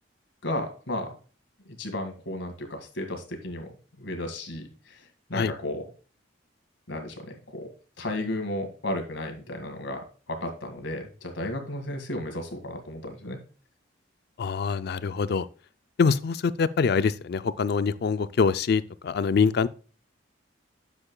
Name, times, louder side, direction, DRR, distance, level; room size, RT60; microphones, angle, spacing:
voice 1, 0.4-1.2 1.7-5.0 5.3-5.9 6.9-7.7 8.0-13.4, left 1 dB, 75° left, 1.8 m, -34 dB
voice 2, 14.4-15.5 16.0-19.7, left 5 dB, 55° left, 0.4 m, -24 dB
9.7 x 7.1 x 2.2 m
head